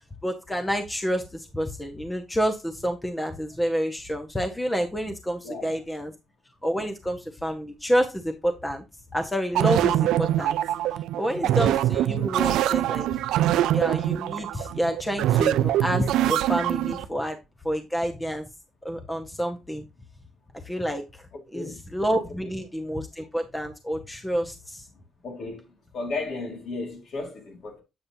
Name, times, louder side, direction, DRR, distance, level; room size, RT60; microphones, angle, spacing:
voice 1, 0.2-6.1 6.6-8.8 9.1-10.5 11.2-13.1 13.7-17.4 17.6-18.5 18.8-19.8 20.6-21.0 21.5-24.9, equal, 10° left, 1.0 m, -28 dB
voice 2, 5.4-5.8 11.4-11.5 21.3-21.8 22.4-22.5 25.2-27.8, left 3 dB, 60° left, 3.1 m, -35 dB
sound 1, 9.5-17.1, right 13 dB, 85° right, 0.3 m, -24 dB
8.5 x 5.4 x 2.7 m
cardioid pair, 90°, 0 cm